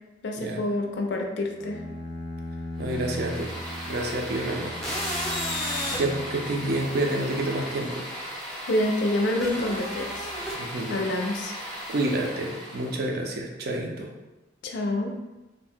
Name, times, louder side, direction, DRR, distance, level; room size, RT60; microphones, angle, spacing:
voice 1, 0.2-1.8 8.7-10.3 10.9-11.5 14.6-15.1, left 1 dB, 65° left, 2 dB, 0.4 m, -27 dB
Bowed string instrument, 1.6-7.4, left 1 dB, 85° right, 1.0 m, -38 dB
voice 2, 2.8-3.5 3.9-4.7 5.1-8.0 10.6-11.0 11.9-14.1, right 1 dB, 55° right, 0 dB, 0.4 m, -29 dB
sound 1, 2.9-13.1, equal, ahead, 0.5 m, -34 dB
2.6 x 2.1 x 3.4 m, 1.0 s
head